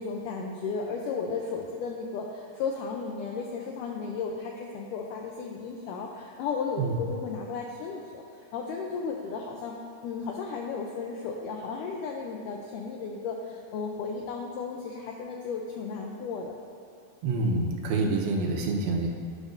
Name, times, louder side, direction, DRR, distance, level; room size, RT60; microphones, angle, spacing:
voice 1, 0.0-9.7 10.0-16.5, left 5 dB, 90° left, 0 dB, 1.8 m, -34 dB
voice 2, 17.2-19.1, right 3 dB, 85° right, 0 dB, 2.7 m, -27 dB
11.5 x 10.5 x 2.6 m, 2.7 s
omnidirectional pair, 4.4 m